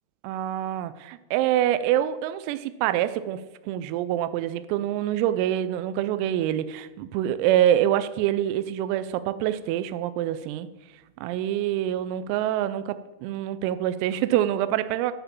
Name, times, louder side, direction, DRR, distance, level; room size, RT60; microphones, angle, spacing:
voice 1, 0.2-3.4 3.7-10.7 11.2-15.1, right 12 dB, 90° right, 13 dB, 3.3 m, -25 dB
12.5 x 5.8 x 7.3 m, 1.1 s
omnidirectional pair, 5.9 m